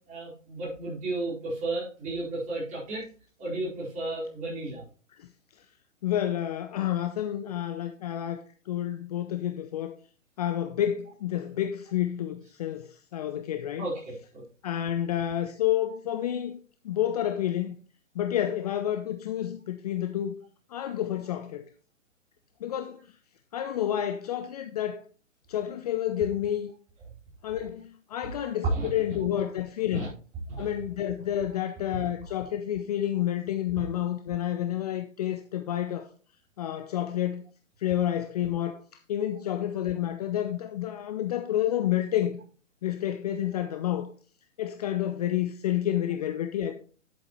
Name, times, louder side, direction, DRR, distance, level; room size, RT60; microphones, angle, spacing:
voice 1, 0.1-3.1 3.4-4.8 13.8-14.4 28.6-28.9 29.9-30.1 30.5-30.7, right 2 dB, 20° right, 4.8 m, -32 dB
voice 2, 6.0-10.0 10.4-13.9 14.6-16.6 16.8-17.8 18.2-20.3 20.7-21.7 22.6-23.0 23.5-25.0 25.5-26.7 27.4-30.0 30.6-36.1 36.6-37.4 37.8-38.8 39.1-42.4 42.8-44.1 44.6-46.7, left 11 dB, 30° left, 0.6 m, -29 dB
11.0 x 8.0 x 3.1 m
figure-of-eight pair, 125°, 38 cm